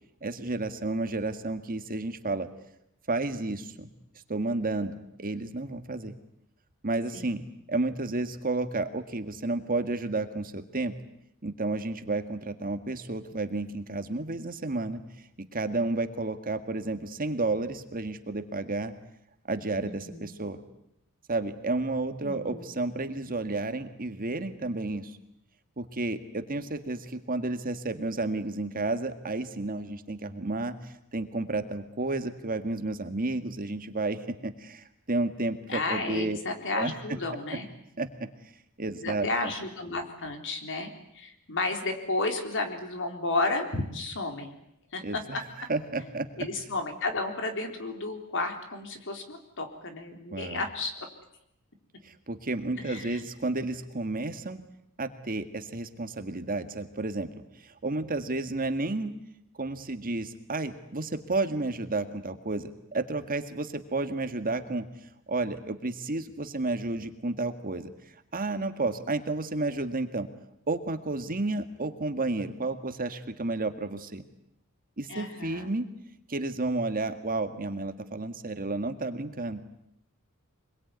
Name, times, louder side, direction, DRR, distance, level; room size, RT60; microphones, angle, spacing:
voice 1, 0.2-2.5 3.1-3.9 4.3-4.9 5.2-6.1 6.8-7.4 7.7-10.9 11.4-15.0 15.4-18.9 19.5-20.6 21.3-25.2 25.8-36.4 36.7-37.2 38.0-38.1 38.8-39.3 45.0-45.4 45.7-46.3 50.3-50.6 52.0-54.6 55.0-57.3 57.6-59.1 59.6-64.8 65.3-67.9 68.3-70.3 70.7-74.2 75.0-75.8 76.3-79.6, right 2 dB, 40° right, 8 dB, 1.8 m, -31 dB
voice 2, 19.8-20.3 22.2-22.6 35.7-37.7 39.0-44.5 44.9-45.4 46.4-50.9 52.8-53.3 75.1-75.7, left 2 dB, 60° left, 5 dB, 3.9 m, -32 dB
25.5 x 22.0 x 9.5 m, 0.78 s
head